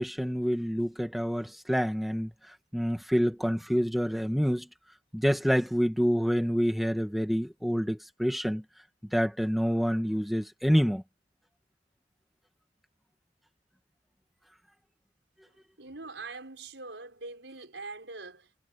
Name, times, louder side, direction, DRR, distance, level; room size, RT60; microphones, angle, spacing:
voice 1, 0.0-4.7 5.1-8.6 9.1-11.0, equal, ahead, 1.9 m, -27 dB
voice 2, 15.8-18.6, right 3 dB, 75° right, 5.8 m, -43 dB
head